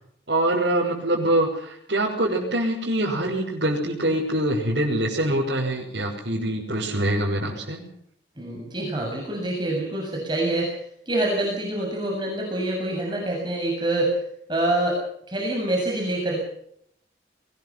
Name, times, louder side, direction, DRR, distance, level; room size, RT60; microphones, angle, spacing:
voice 1, 0.3-7.8, right 1 dB, 75° right, -5 dB, 6.3 m, -24 dB
voice 2, 8.4-10.8 11.1-14.2 14.5-15.0 15.3-16.4, right 1 dB, 25° right, -1 dB, 7.2 m, -26 dB
23.0 x 21.0 x 5.8 m, 0.70 s
head